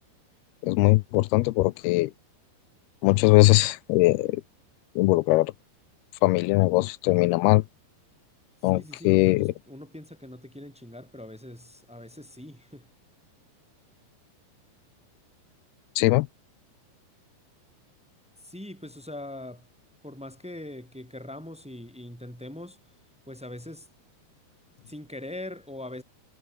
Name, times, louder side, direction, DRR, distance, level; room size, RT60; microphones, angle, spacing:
voice 1, 0.6-2.1 3.0-4.4 5.0-5.5 6.2-7.6 8.6-9.5 16.0-16.3, left 21 dB, 80° left, 2.4 m, -21 dB
voice 2, 8.7-12.9 18.4-19.7 20.0-22.8 23.2-23.9 24.9-26.0, left 1 dB, ahead, 2.4 m, -41 dB
omnidirectional pair, 4.9 m